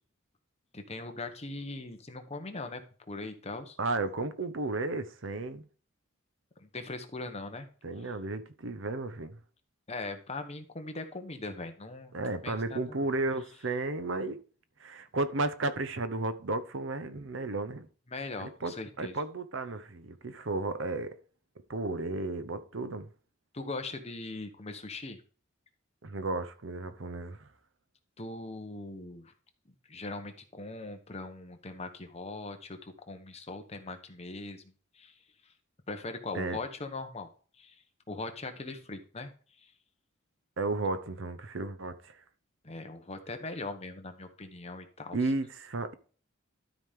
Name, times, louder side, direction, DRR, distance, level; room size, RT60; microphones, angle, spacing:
voice 1, 0.7-2.8 3.1-3.8 6.6-7.7 9.9-12.2 12.4-13.0 18.1-19.1 23.5-25.2 28.2-29.3 29.9-34.6 35.0-35.1 35.9-37.3 37.6-37.7 38.1-39.3 42.6-45.2, left 2 dB, 30° left, 1.1 m, -40 dB
voice 2, 3.8-5.6 7.8-9.4 12.1-14.4 14.8-17.9 18.4-21.2 21.7-23.1 26.0-27.5 36.3-36.6 40.6-42.2 45.1-45.9, right 2 dB, 65° right, 0.8 m, -33 dB
12.5 x 5.1 x 3.7 m
head